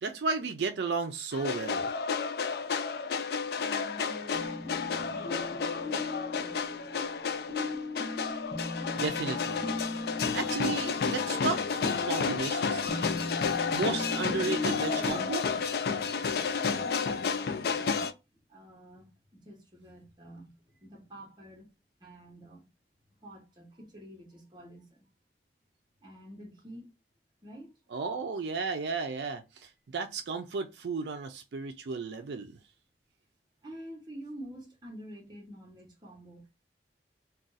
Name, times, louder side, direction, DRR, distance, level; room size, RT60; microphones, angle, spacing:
voice 1, 0.0-1.9 8.7-9.7 10.3-13.2 13.7-15.5 27.9-32.6, right 4 dB, 75° right, 0.4 m, -34 dB
sound 1, 1.3-18.1, left 5 dB, 60° left, 0.3 m, -31 dB
voice 2, 3.6-6.7 16.5-18.1 18.5-21.7 22.0-22.6 23.2-25.1 26.0-26.9 27.4-27.7 33.6-36.5, right 1 dB, 25° right, 0.9 m, -48 dB
sound 2, 4.3-15.1, left 3 dB, 20° left, 0.7 m, -39 dB
2.5 x 2.3 x 3.8 m
head